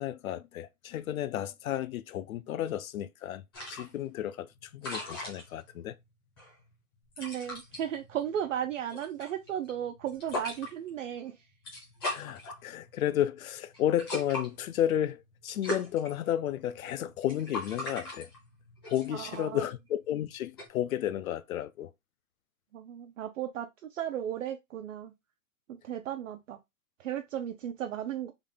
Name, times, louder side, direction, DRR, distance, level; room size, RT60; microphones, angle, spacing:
voice 1, 0.0-5.9 12.1-18.3 18.9-21.9, left 11 dB, 70° left, 0.5 m, -32 dB
sound 1, 3.5-20.7, left 1 dB, 15° left, 0.7 m, -42 dB
voice 2, 7.2-11.5 19.1-19.7 22.7-25.1 25.7-26.6 27.0-28.3, right 10 dB, 60° right, 0.5 m, -35 dB
3.6 x 2.3 x 3.7 m
hypercardioid pair, 180°, 44 cm